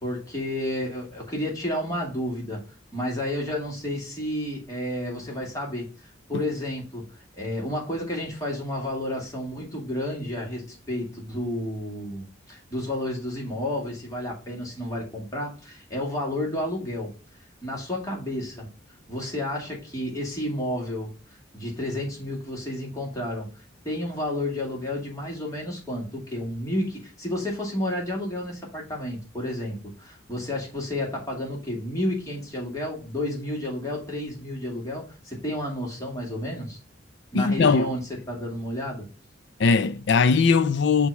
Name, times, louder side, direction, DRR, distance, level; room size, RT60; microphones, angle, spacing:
voice 1, 0.0-2.6 2.9-5.9 6.3-17.1 17.6-18.7 19.1-21.1 21.5-23.5 23.8-36.8 37.3-39.1, left 1 dB, 20° left, 2.2 m, -31 dB
voice 2, 37.3-37.9 39.6-41.1, left 5 dB, 65° left, 0.5 m, -20 dB
6.2 x 2.9 x 5.6 m
head